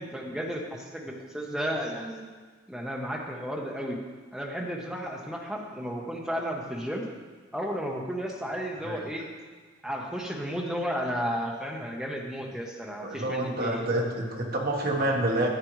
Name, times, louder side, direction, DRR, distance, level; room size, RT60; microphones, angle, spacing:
voice 1, 0.0-2.2 2.7-4.0 4.3-7.1 7.5-9.3 9.8-13.9, equal, ahead, -1 dB, 0.9 m, -33 dB
voice 2, 13.0-15.5, right 1 dB, 45° right, 0 dB, 1.3 m, -28 dB
11.5 x 8.4 x 3.1 m, 1.4 s
head